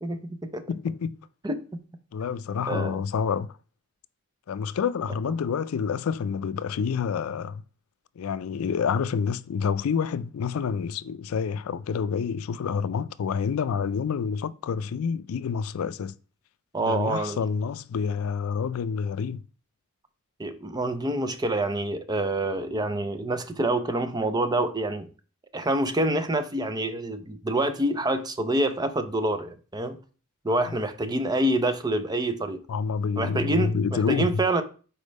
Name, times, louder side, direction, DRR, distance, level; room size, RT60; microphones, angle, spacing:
voice 1, 0.0-0.6 1.4-1.6 2.7-3.0 16.7-17.4 20.4-25.1 25.5-30.0 30.4-32.6 33.2-34.6, right 1 dB, 20° right, 0.5 m, -27 dB
voice 2, 0.7-1.2 2.1-3.6 4.5-7.6 8.2-16.1 16.8-19.4 30.5-30.7 32.7-34.4, left 6 dB, 85° left, 0.4 m, -28 dB
5.1 x 4.4 x 5.2 m
head